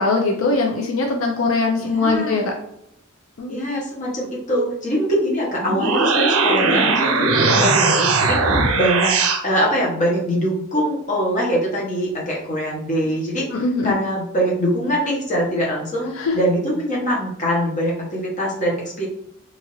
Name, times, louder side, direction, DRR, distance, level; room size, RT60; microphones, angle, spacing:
voice 1, 0.0-2.5 3.4-3.8 7.6-7.7 13.5-13.9 16.2-16.4, left 3 dB, 75° left, 1 dB, 0.4 m, -21 dB
voice 2, 1.8-2.4 3.5-9.2 9.4-13.5 13.8-19.1, equal, 35° left, -3 dB, 0.8 m, -23 dB
sound 1, 5.6-9.4, right 3 dB, 85° right, 0.5 m, -18 dB
2.9 x 2.4 x 2.9 m, 0.74 s
head